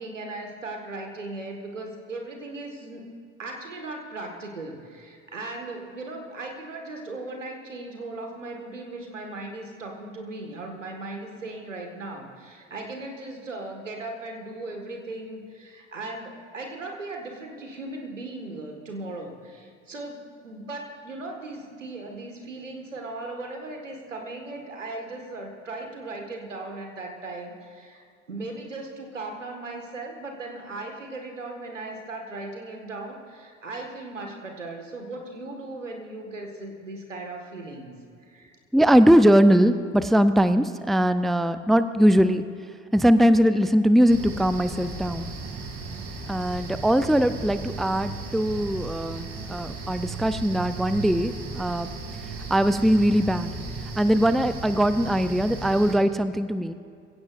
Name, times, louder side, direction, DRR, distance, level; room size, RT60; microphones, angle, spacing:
voice 1, 0.0-3.1 3.4-37.9 38.2-38.6, right 2 dB, 85° right, 3 dB, 1.8 m, -37 dB
voice 2, 38.7-42.4 42.9-45.3 46.3-51.9 52.5-53.5 54.0-56.7, equal, ahead, 12 dB, 0.5 m, -21 dB
sound 1, 44.1-56.0, right 3 dB, 40° right, 2.6 m, -36 dB
25.5 x 16.5 x 2.6 m, 2.4 s
figure-of-eight pair, 60°, 37 cm